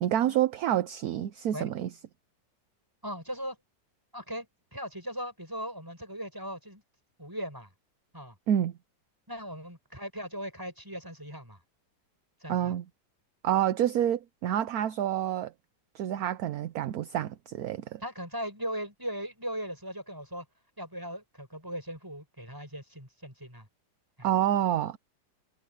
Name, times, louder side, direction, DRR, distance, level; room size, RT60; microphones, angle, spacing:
voice 1, 0.0-1.9 8.5-8.7 12.5-12.8 13.4-15.5 15.9-18.0 24.2-25.0, right 11 dB, 65° right, 1.1 m, -28 dB
voice 2, 3.0-3.6 4.1-6.8 7.2-7.7 8.1-8.4 9.3-11.6 12.4-12.8 18.0-20.5 20.8-23.7 24.2-24.3, equal, 10° right, 7.3 m, -38 dB
omnidirectional pair, 1.9 m